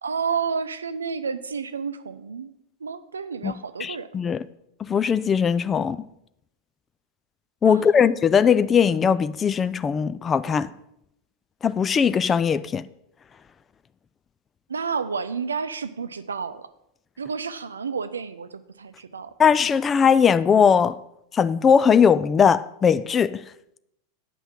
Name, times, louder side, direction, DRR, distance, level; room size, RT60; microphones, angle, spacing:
voice 1, 0.0-2.5 2.8-4.1 7.7-8.1 14.7-16.7 17.2-18.5 18.8-19.3, right 5 dB, 75° right, 0.6 m, -30 dB
voice 2, 3.8-4.4 4.8-6.0 7.6-10.7 11.6-12.8 19.4-21.0 21.3-23.4, left 7 dB, 20° left, 0.4 m, -19 dB
9.1 x 5.7 x 7.4 m
figure-of-eight pair, 85°, 0 cm